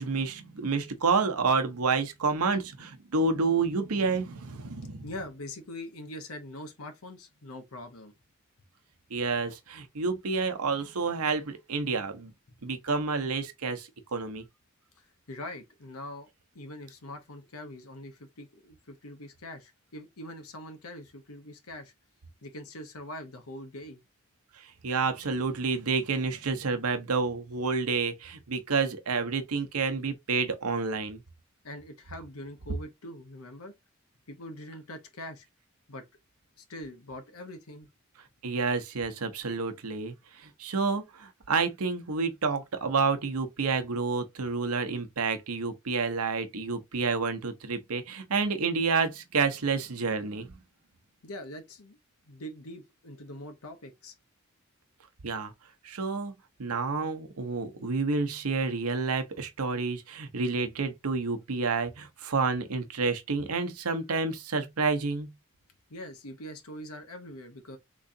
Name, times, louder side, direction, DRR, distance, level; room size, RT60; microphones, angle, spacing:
voice 1, 0.0-5.1 9.1-12.3 12.6-14.4 24.6-31.2 38.4-50.6 55.2-55.5 55.8-56.3 56.6-65.3, right 4 dB, 85° right, 0.8 m, -29 dB
voice 2, 5.0-8.1 12.5-12.6 15.0-16.3 16.5-21.9 22.4-24.0 31.6-33.7 34.3-35.5 35.9-36.0 36.6-37.9 51.2-52.0 52.3-54.1 65.9-67.8, left 1 dB, 80° left, 1.0 m, -43 dB
3.7 x 3.1 x 2.6 m
head